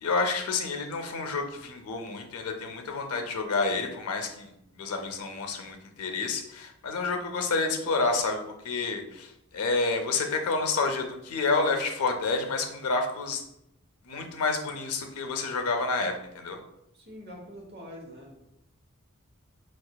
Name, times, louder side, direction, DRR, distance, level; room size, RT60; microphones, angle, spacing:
voice 1, 0.0-8.4 8.6-13.4 14.0-16.6, left 3 dB, 80° left, 5 dB, 0.5 m, -29 dB
voice 2, 16.9-18.4, equal, 50° right, -1 dB, 0.9 m, -44 dB
4.8 x 2.4 x 2.2 m, 0.83 s
head